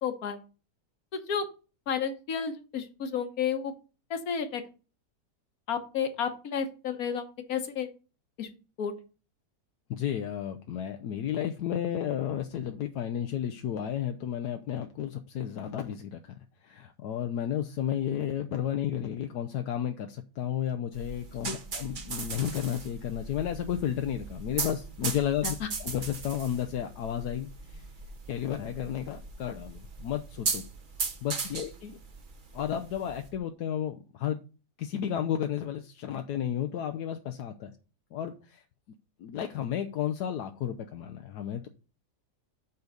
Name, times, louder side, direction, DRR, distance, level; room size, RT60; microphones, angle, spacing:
voice 1, 0.0-0.4 1.1-1.5 1.9-3.7 4.1-4.6 5.7-7.9 8.4-8.5 8.8-8.9 21.4-21.6 25.4-25.7, left 7 dB, 65° left, 7 dB, 1.6 m, -31 dB
voice 2, 9.9-16.3 16.6-27.9 28.3-30.6 31.2-32.0 32.5-34.4 34.8-37.7 38.1-38.6 39.2-41.7, left 10 dB, 80° left, 6 dB, 1.2 m, -32 dB
sound 1, 20.9-33.3, right 4 dB, 40° right, 0.9 m, -38 dB
8.1 x 3.9 x 6.6 m, 0.34 s
omnidirectional pair, 1.7 m